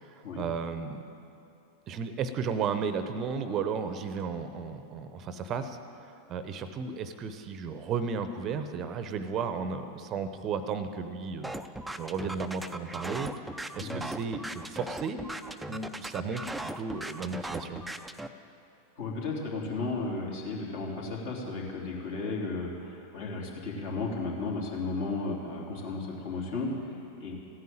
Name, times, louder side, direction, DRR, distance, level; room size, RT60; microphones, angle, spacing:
voice 1, 0.0-1.0 1.9-11.5 12.0-13.3 13.7-15.2 15.7-17.8, right 5 dB, 30° right, 10 dB, 0.8 m, -34 dB
sound 1, 11.4-18.3, right 1 dB, 5° right, 0.6 m, -38 dB
voice 2, 19.0-27.4, left 3 dB, 55° left, -2 dB, 3.2 m, -34 dB
15.5 x 9.4 x 8.9 m, 2.7 s
figure-of-eight pair, 90°, 0 cm